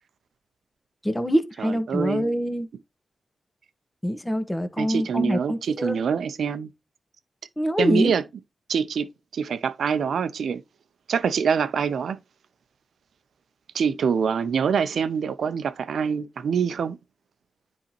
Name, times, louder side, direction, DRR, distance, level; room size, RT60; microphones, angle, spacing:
voice 1, 1.0-2.7 4.0-6.0 7.6-8.1, equal, 15° left, 1.4 m, -25 dB
voice 2, 1.6-2.3 4.8-6.7 7.8-8.2 8.7-10.6 11.1-12.2 13.7-17.0, right 6 dB, 80° right, 0.6 m, -25 dB
10.0 x 4.1 x 3.0 m
supercardioid pair, 40°, 0 cm